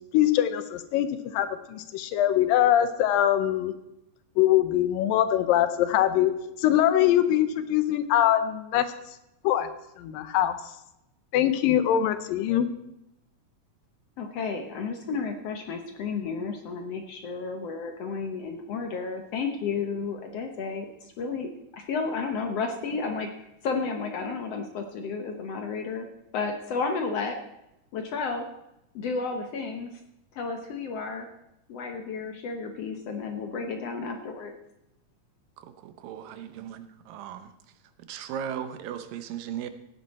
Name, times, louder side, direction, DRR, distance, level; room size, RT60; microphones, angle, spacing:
voice 1, 0.1-3.7 4.4-6.3 6.6-8.9 9.4-9.7 10.0-10.6 11.3-12.7, left 11 dB, 85° left, 11 dB, 2.6 m, -23 dB
voice 2, 14.2-23.3 23.6-26.0 26.3-27.4 27.9-28.5 29.0-29.9 30.3-31.3 31.7-34.5, left 4 dB, 65° left, 5 dB, 1.6 m, -32 dB
voice 3, 35.6-37.5 38.0-39.7, right 9 dB, 85° right, 10 dB, 2.6 m, -37 dB
16.0 x 10.0 x 4.2 m, 0.87 s
omnidirectional pair, 3.9 m